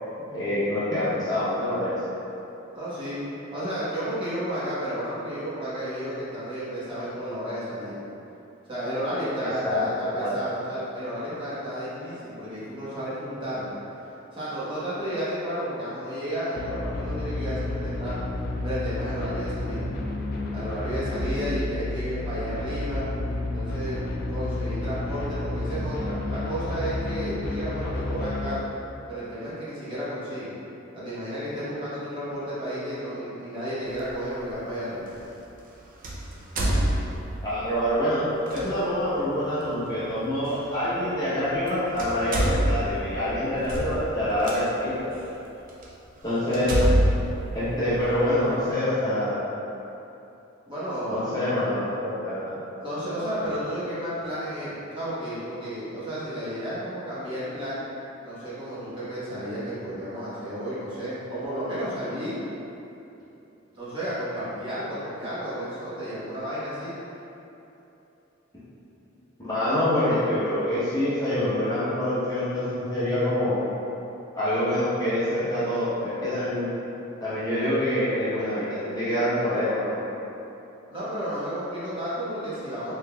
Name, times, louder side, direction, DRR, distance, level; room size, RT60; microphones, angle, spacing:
voice 1, 0.3-1.9 9.4-9.8 10.2-10.3 37.4-38.2 38.5-45.1 46.2-46.8 47.5-49.4 51.1-52.5 69.4-73.6 74.3-76.7 77.2-80.0, left 1 dB, 20° left, -12 dB, 0.8 m, -26 dB
voice 2, 2.7-3.2 3.5-8.0 8.7-13.7 14.3-18.2 18.6-19.8 20.5-23.1 23.5-24.0 24.3-28.7 29.1-30.5 30.9-35.1 50.7-51.2 52.8-57.8 58.2-62.4 63.7-66.9 80.9-83.0, equal, 25° right, -12 dB, 1.1 m, -32 dB
sound 1, 16.6-28.5, left 2 dB, 45° left, 0.3 m, -31 dB
sound 2, 34.0-34.1 36.0-37.5 38.5-38.7 40.5-40.6 41.5-41.7 42.0-44.6 45.2-45.3 45.8-45.9 46.5-48.3, right 1 dB, 40° right, 0.4 m, -25 dB
3.7 x 3.6 x 2.2 m, 2.9 s
head